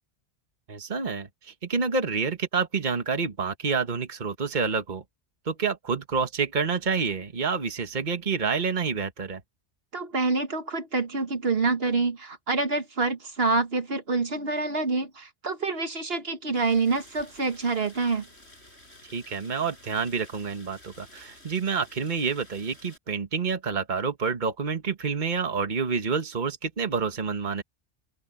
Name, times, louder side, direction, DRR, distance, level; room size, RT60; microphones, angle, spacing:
voice 1, 0.7-5.0 5.4-9.4 19.1-27.6, right 5 dB, 45° right, 1.5 m, -28 dB
voice 2, 9.9-18.3, right 3 dB, 60° right, 1.7 m, -27 dB
Rain, 16.5-23.0, left 1 dB, 70° left, 8.3 m, -52 dB
open air
omnidirectional pair, 1.1 m